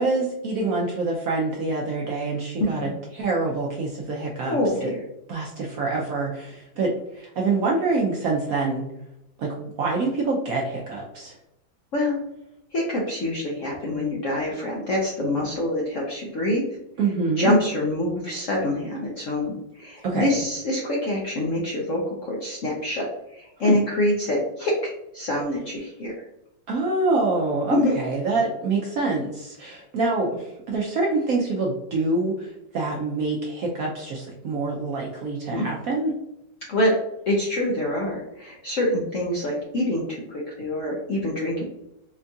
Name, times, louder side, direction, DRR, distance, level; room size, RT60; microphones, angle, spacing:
voice 1, 0.0-4.6 4.8-4.9 5.3-8.9 9.4-11.4 17.0-17.5 20.0-20.4 23.6-23.8 26.7-36.1, right 3 dB, 75° right, -2 dB, 0.8 m, -26 dB
voice 2, 4.4-5.0 11.9-12.2 12.7-16.6 17.4-26.1 27.7-27.9 35.5-35.7 36.7-36.9 37.3-41.6, left 1 dB, 70° left, -3 dB, 0.7 m, -25 dB
4.4 x 2.3 x 2.6 m, 0.88 s
omnidirectional pair, 2.0 m